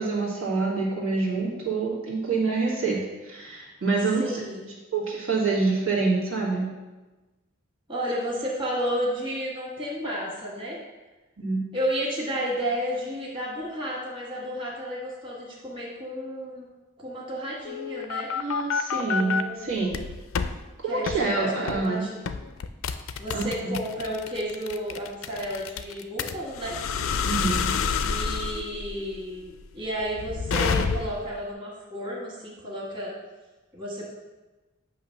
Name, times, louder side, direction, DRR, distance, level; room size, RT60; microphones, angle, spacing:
voice 1, 0.0-3.0 3.2-4.4 4.9-6.7 11.4-11.6 18.3-20.0 20.8-22.1 23.3-23.7 27.2-27.7, right 3 dB, 90° right, -4 dB, 1.7 m, -26 dB
voice 2, 4.2-4.7 7.9-10.8 11.7-16.7 17.0-18.3 19.0-19.7 20.9-22.2 23.2-26.8 28.0-33.1 33.7-34.1, equal, 25° right, -4 dB, 1.4 m, -32 dB
sound 1, 17.6-19.4 19.9-20.5 21.1-21.2 21.7-21.9 22.3-31.3, left 6 dB, 85° left, 0.4 m, -28 dB
8.5 x 2.9 x 5.7 m, 1.2 s
head